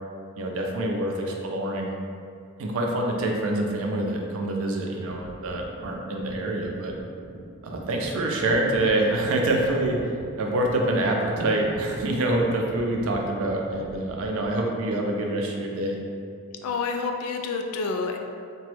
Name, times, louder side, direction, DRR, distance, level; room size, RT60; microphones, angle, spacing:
voice 1, 0.4-1.9 2.6-6.9 7.6-16.0, right 1 dB, 65° right, 0 dB, 0.4 m, -26 dB
sound 1, 5.1-14.5, right 1 dB, ahead, 0.6 m, -43 dB
voice 2, 16.6-18.2, left 4 dB, 80° left, 5 dB, 0.3 m, -28 dB
2.9 x 2.2 x 3.1 m, 2.3 s
head